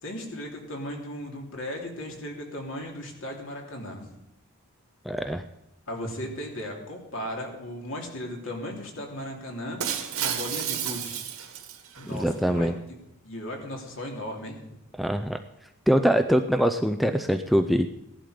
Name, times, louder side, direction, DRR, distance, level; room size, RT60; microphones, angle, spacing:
voice 1, 0.0-4.1 5.9-9.8 10.2-11.2 12.0-12.7 13.2-14.6, left 1 dB, 60° left, 1 dB, 3.2 m, -36 dB
voice 2, 5.1-5.4 12.1-12.7 15.0-15.4 15.9-17.9, equal, ahead, 6 dB, 0.4 m, -23 dB
Shatter, 9.8-12.2, right 9 dB, 75° right, 1.8 m, -31 dB
17.0 x 11.5 x 5.1 m, 0.87 s
head